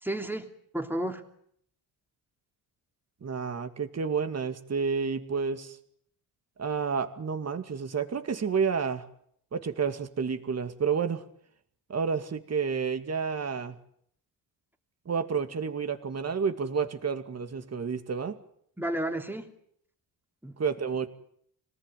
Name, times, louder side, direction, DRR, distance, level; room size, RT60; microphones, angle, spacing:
voice 1, 0.0-1.2 18.8-19.5 20.4-20.6, right 1 dB, 5° right, 5 dB, 3.0 m, -32 dB
voice 2, 3.2-5.8 6.6-9.1 9.5-11.3 11.9-13.7 15.1-18.4 20.6-21.1, right 6 dB, 35° right, 8 dB, 2.4 m, -30 dB
26.0 x 19.0 x 9.3 m, 0.70 s
cardioid pair, 110°, 42 cm